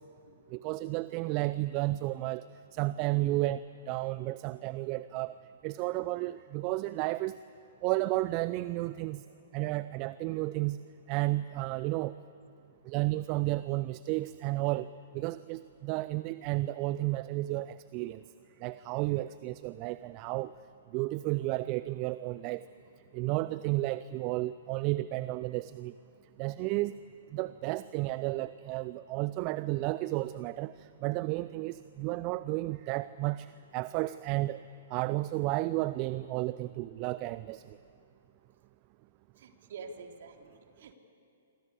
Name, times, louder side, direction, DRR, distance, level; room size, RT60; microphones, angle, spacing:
voice 1, 0.5-2.4 2.7-5.3 5.6-7.4 7.8-9.2 9.5-10.8 11.1-12.1 12.8-14.9 15.1-18.2 18.6-20.5 20.9-22.6 23.1-25.9 26.4-27.0 27.3-34.6 34.9-37.8, right 18 dB, 35° right, 16 dB, 0.5 m, -32 dB
voice 2, 12.6-12.9 39.3-40.9, right 4 dB, 55° right, 3 dB, 3.5 m, -48 dB
26.5 x 24.5 x 8.4 m, 2.8 s
figure-of-eight pair, 115°, 0 cm